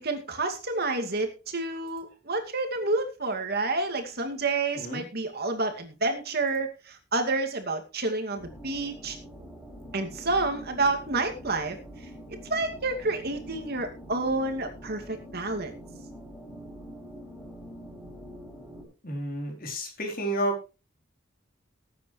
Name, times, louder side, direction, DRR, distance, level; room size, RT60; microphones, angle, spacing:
voice 1, 0.0-9.2 9.9-11.8 12.5-15.7, right 3 dB, 55° right, 5 dB, 2.5 m, -29 dB
sound 1, 8.4-18.8, equal, 5° left, 7.4 m, -45 dB
voice 2, 19.0-20.6, right 1 dB, 50° left, 2 dB, 4.0 m, -31 dB
19.0 x 9.1 x 3.3 m, 0.31 s
head